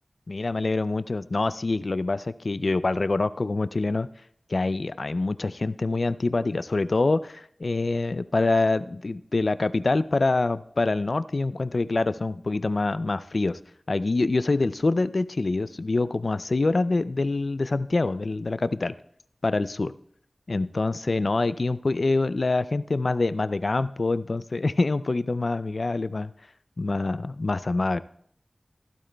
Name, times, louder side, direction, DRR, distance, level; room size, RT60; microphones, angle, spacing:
voice 1, 0.3-4.1 4.5-13.6 13.9-18.9 19.4-19.9 20.5-26.3 26.8-28.0, left 3 dB, 60° left, 14 dB, 0.4 m, -25 dB
15.0 x 12.5 x 2.3 m, 0.67 s
wide cardioid pair, 65°, 0 cm